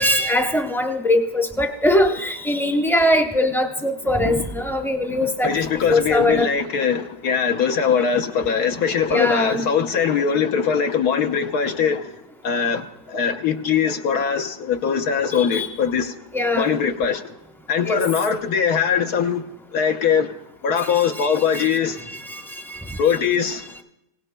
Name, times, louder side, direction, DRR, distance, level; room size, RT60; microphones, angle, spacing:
voice 1, 0.0-5.5 5.9-6.5 9.1-9.6 15.3-15.7 16.3-16.8 17.8-18.0 20.8-21.7 22.1-22.4 22.7-23.0, left 1 dB, ahead, 0.6 m, -21 dB
voice 2, 5.4-12.1 12.4-16.1 16.6-17.3 17.7-19.4 19.7-20.4 20.6-22.0 23.0-23.7, left 7 dB, 70° left, 1.4 m, -21 dB
25.0 x 17.5 x 2.2 m
omnidirectional pair, 1.7 m